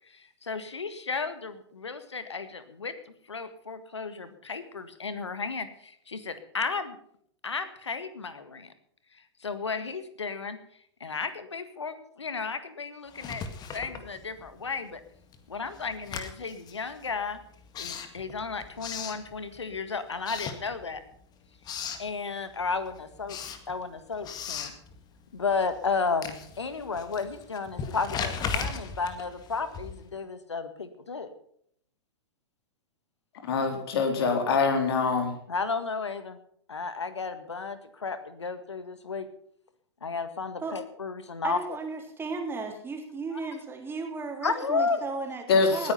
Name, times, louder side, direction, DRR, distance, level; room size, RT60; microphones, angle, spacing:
voice 1, 0.1-2.9 3.3-7.0 7.4-8.7 9.4-10.6 11.0-13.4 13.7-15.0 15.5-17.4 17.8-21.0 22.0-23.4 23.7-24.7 25.3-31.3 35.5-36.4 36.7-39.3 40.0-41.6 43.3-43.4 44.4-45.0, left 4 dB, 85° left, 11 dB, 1.8 m, -33 dB
Writing, 13.1-14.7 15.0-19.8 20.2-21.2 21.4-22.1 22.5-30.2, left 6 dB, 30° left, 1.9 m, -38 dB
voice 2, 33.4-35.3 45.5-45.9, left 4 dB, 60° left, 4 dB, 4.0 m, -24 dB
voice 3, 41.4-45.9, right 4 dB, 15° right, 3 dB, 3.4 m, -35 dB
19.0 x 10.0 x 5.7 m, 0.65 s
figure-of-eight pair, 105°, 14 cm